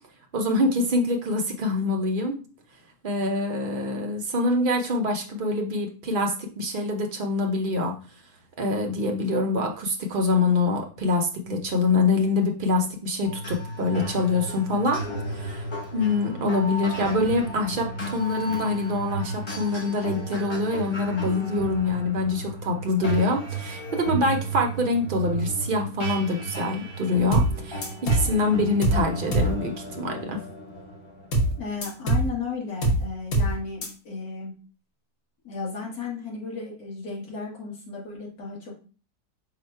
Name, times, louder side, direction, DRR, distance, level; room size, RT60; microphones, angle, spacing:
voice 1, 0.3-2.4 3.0-7.9 8.6-15.0 15.3-15.7 15.9-27.9 28.1-30.4, left 2 dB, 70° right, 2 dB, 0.5 m, -25 dB
sound 1, 13.2-32.0, right 2 dB, 30° left, 0.6 m, -34 dB
sound 2, 27.3-27.6 27.8-28.3 28.8-29.1 29.3-29.6 31.3-31.6 31.8-32.3 32.8-33.1 33.3-33.6 33.8-33.9, right 2 dB, 45° left, 1.0 m, -22 dB
voice 2, 31.6-34.5 35.4-38.7, left 4 dB, 65° left, -3 dB, 1.8 m, -34 dB
4.9 x 2.1 x 4.4 m, 0.37 s
omnidirectional pair, 1.7 m